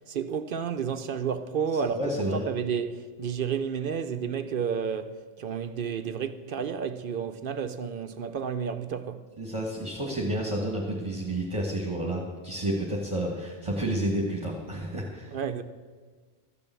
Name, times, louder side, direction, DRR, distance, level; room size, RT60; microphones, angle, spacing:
voice 1, 0.0-2.2 2.5-9.3 15.3-15.6, right 7 dB, 60° right, 0.8 m, -31 dB
voice 2, 1.7-2.4 9.4-15.4, right 1 dB, 30° right, 1.8 m, -30 dB
14.0 x 7.0 x 8.2 m
omnidirectional pair, 1.0 m